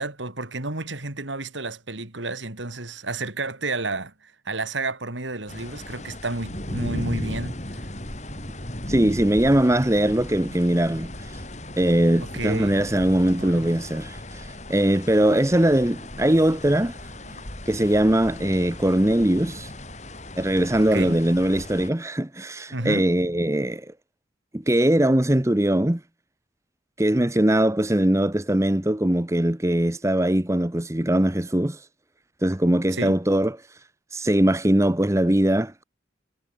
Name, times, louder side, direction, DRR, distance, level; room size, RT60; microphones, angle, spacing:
voice 1, 0.0-7.8 12.2-12.8 13.4-13.7 17.3-17.4 20.9-21.2 22.7-23.1 32.9-33.2, right 2 dB, 80° right, 3.4 m, -31 dB
sound 1, 5.5-21.9, left 1 dB, 35° left, 6.7 m, -36 dB
voice 2, 8.9-11.4 11.8-17.0 17.7-19.7 20.4-23.9 24.5-26.0 27.0-31.8 32.4-33.6 34.1-35.8, right 1 dB, 15° right, 0.9 m, -21 dB
head